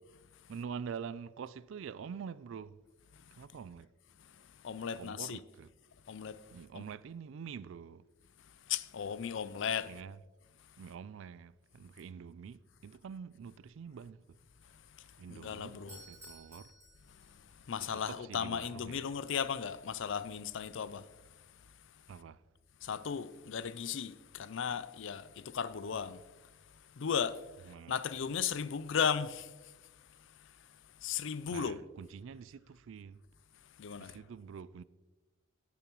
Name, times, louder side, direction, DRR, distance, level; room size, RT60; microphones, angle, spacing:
voice 1, 0.5-2.8 3.3-3.9 4.8-5.7 6.5-8.0 9.9-10.2 10.8-14.4 15.2-16.7 18.1-19.0 22.1-22.4 27.7-27.9 31.5-33.2 34.0-34.8, right 6 dB, 65° right, 0.3 m, -46 dB
voice 2, 4.6-5.4 6.1-6.4 6.7-6.8 8.7-9.9 15.3-16.0 17.7-21.0 22.8-26.2 27.0-27.4 27.9-29.5 31.0-31.8 33.8-34.2, left 7 dB, 65° left, 0.4 m, -35 dB
Doorbell, 15.8-17.7, right 1 dB, 15° right, 2.7 m, -55 dB
18.5 x 6.9 x 3.0 m
head